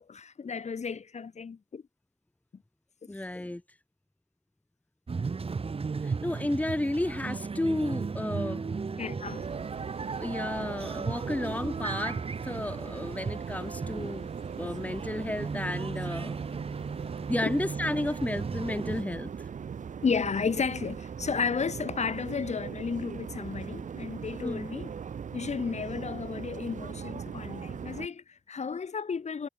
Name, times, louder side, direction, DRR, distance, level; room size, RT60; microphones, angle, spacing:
voice 1, 0.0-1.8 9.0-9.4 17.4-17.5 20.0-24.9 25.3-29.5, left 5 dB, 65° left, 5.5 m, -33 dB
voice 2, 3.1-3.6 6.0-8.7 10.2-14.3 14.6-16.4 17.3-19.3 24.4-24.7, left 1 dB, 10° left, 1.6 m, -32 dB
sound 1, 5.1-19.0, right 4 dB, 50° right, 4.7 m, -36 dB
sound 2, 9.2-28.1, right 7 dB, 90° right, 2.6 m, -40 dB
wide cardioid pair, 120°, 13 cm